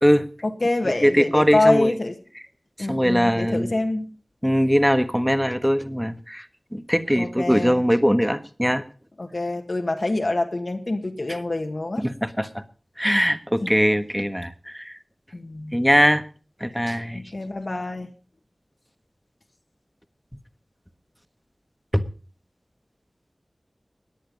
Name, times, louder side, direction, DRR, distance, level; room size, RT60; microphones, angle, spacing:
voice 1, 0.4-2.1 2.8-4.1 7.2-7.7 9.2-12.0 15.3-15.8 17.1-18.1, left 2 dB, 65° left, 4 dB, 1.7 m, -25 dB
voice 2, 1.0-1.9 2.8-3.7 4.4-8.8 11.3-11.4 12.0-12.6 13.0-15.0 15.7-16.2 16.6-17.2 21.9-22.0, equal, ahead, 10 dB, 1.4 m, -21 dB
17.5 x 10.5 x 5.2 m, 0.38 s
wide cardioid pair, 45°, 0 cm